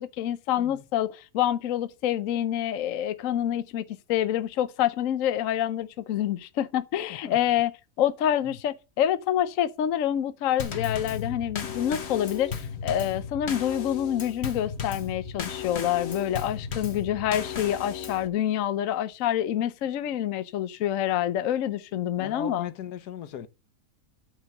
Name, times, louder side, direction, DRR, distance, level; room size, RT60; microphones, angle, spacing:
voice 1, 0.0-7.7 8.0-22.7, left 11 dB, 60° left, 1.0 m, -27 dB
Drum kit / Snare drum / Bass drum, 10.6-18.3, left 7 dB, 45° left, 1.3 m, -35 dB
voice 2, 22.2-23.5, left 10 dB, 75° left, 1.4 m, -38 dB
9.0 x 5.3 x 7.7 m
omnidirectional pair, 1.7 m